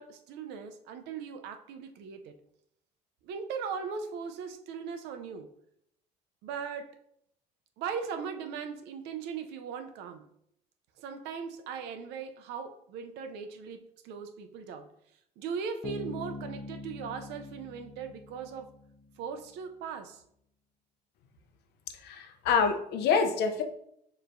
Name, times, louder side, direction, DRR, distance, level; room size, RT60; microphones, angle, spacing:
voice 1, 0.0-2.4 3.2-5.5 6.4-7.0 7.8-10.3 11.0-14.9 15.4-18.7 19.2-20.2, right 6 dB, 90° right, 7 dB, 0.6 m, -39 dB
Bass guitar, 15.8-19.3, left 3 dB, 25° left, 0.6 m, -43 dB
voice 2, 22.0-23.6, left 6 dB, 75° left, 6 dB, 0.7 m, -26 dB
6.6 x 3.1 x 2.6 m, 0.73 s
cardioid pair, 110°, 17 cm